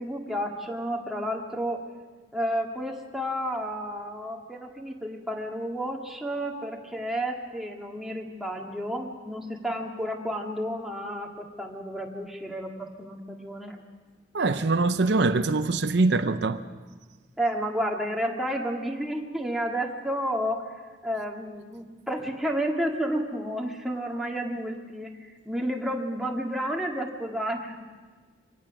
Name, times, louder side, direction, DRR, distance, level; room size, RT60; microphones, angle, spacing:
voice 1, 0.0-1.8 2.3-13.8 17.4-20.6 21.0-27.8, equal, ahead, 1.9 m, -31 dB
voice 2, 14.3-16.6, right 3 dB, 70° right, 0.7 m, -23 dB
24.0 x 18.0 x 6.1 m
head